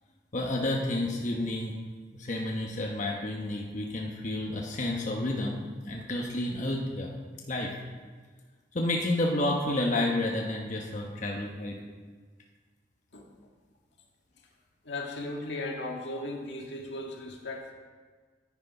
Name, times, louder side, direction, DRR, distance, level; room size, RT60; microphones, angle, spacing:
voice 1, 0.3-1.7 2.1-7.1 7.5-7.7 8.7-11.8, left 1 dB, 45° left, -1 dB, 1.0 m, -30 dB
voice 2, 14.8-17.7, left 2 dB, 80° left, 1 dB, 1.7 m, -36 dB
9.6 x 9.5 x 5.4 m, 1.5 s
head